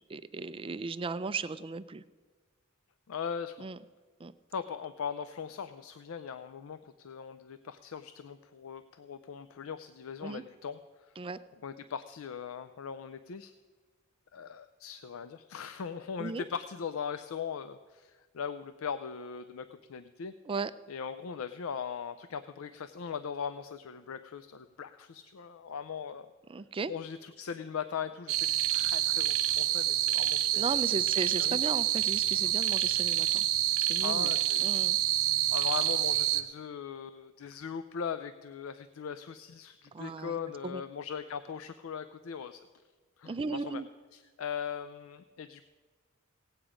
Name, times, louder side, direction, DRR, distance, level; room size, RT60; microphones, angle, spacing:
voice 1, 0.1-2.0 3.6-3.8 4.2-4.3 10.2-10.4 11.2-11.4 16.2-16.4 20.5-20.7 26.5-26.9 30.6-33.5 33.8-34.3 34.6-35.0 39.9-40.4 40.6-40.8 43.2-43.9, right 4 dB, 25° right, 13 dB, 0.4 m, -36 dB
voice 2, 3.1-3.6 4.5-10.8 11.1-11.2 11.6-13.5 14.3-20.4 20.9-26.3 26.9-31.0 31.4-31.7 32.4-32.5 34.0-34.8 35.5-42.7 43.2-43.8 44.1-45.6, left 7 dB, 75° left, 12 dB, 0.4 m, -39 dB
sound 1, 28.3-36.4, right 13 dB, 85° right, 0.7 m, -28 dB
17.5 x 8.8 x 5.0 m, 1.4 s
head